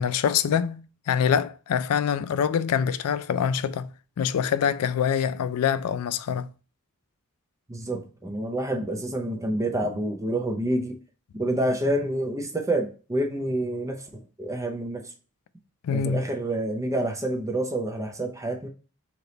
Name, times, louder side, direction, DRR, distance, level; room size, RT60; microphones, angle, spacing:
voice 1, 0.0-3.9 4.2-6.5 15.8-16.3, left 7 dB, 90° left, 0.3 m, -25 dB
voice 2, 7.7-11.0 11.4-15.1 15.9-18.7, right 1 dB, 15° right, 0.5 m, -28 dB
3.3 x 2.9 x 3.9 m
head